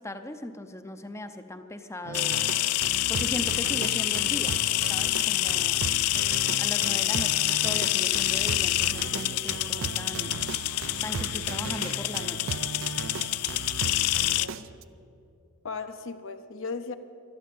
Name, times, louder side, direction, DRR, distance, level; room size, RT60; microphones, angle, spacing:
voice 1, 0.0-2.5 3.1-4.6 4.9-5.8 6.6-10.4 11.0-12.6, left 1 dB, 10° left, 9 dB, 0.6 m, -38 dB
sound 1, 2.1-14.5, left 17 dB, 90° left, 0.4 m, -27 dB
sound 2, 2.1-14.8, right 5 dB, 60° right, 0.5 m, -36 dB
voice 2, 14.2-14.7 15.6-16.9, left 4 dB, 55° left, 8 dB, 0.7 m, -37 dB
12.5 x 12.0 x 8.5 m, 2.6 s
head